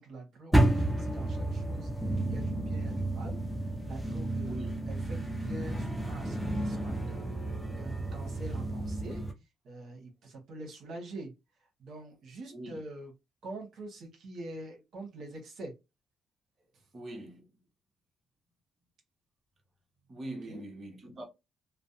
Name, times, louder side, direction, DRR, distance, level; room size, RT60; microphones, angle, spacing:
voice 1, 0.0-1.9 2.3-9.2 9.6-11.3 11.8-13.1 13.4-15.7 20.5-20.6, right 2 dB, 70° right, 0.9 m, -45 dB
sound 1, 0.5-9.3, right 1 dB, ahead, 0.6 m, -31 dB
voice 2, 16.9-17.5 20.1-21.2, right 1 dB, 40° right, 0.9 m, -42 dB
2.4 x 2.0 x 2.6 m
cardioid pair, 90°, 0 cm